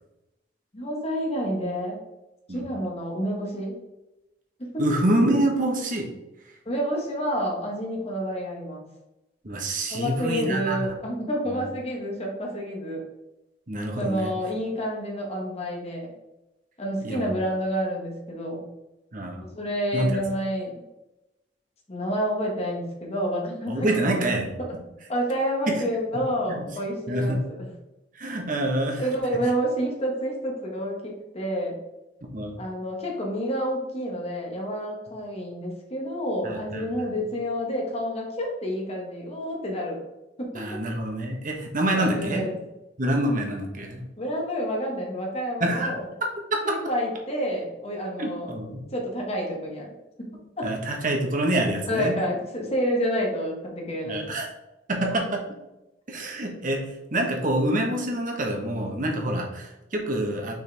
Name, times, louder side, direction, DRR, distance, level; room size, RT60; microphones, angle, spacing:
voice 1, 0.7-2.0 2.5-3.8 4.6-4.8 6.6-8.8 9.9-13.0 14.0-16.1 16.8-18.6 19.4-20.8 21.9-23.9 24.6-24.7 25.1-27.6 29.0-31.7 32.6-40.0 40.4-40.6 41.9-42.5 44.2-46.0 46.6-48.5 48.9-50.3 50.6-50.7 51.9-54.2 55.1-55.2, equal, 35° left, 0 dB, 1.4 m, -29 dB
voice 2, 4.8-6.1 9.4-10.9 11.5-11.7 13.7-14.3 17.0-17.3 19.1-19.4 19.9-20.2 23.7-24.5 25.7-25.8 26.5-26.7 27.1-27.4 28.1-29.1 32.3-32.6 36.4-37.1 40.5-42.5 43.0-44.1 45.6-45.9 46.5-46.8 48.2-48.8 50.6-52.2 54.0-54.5 54.9-55.4 56.1-56.8 57.1-60.5, right 1 dB, 50° right, 1 dB, 1.2 m, -26 dB
6.1 x 4.6 x 3.5 m, 0.96 s
head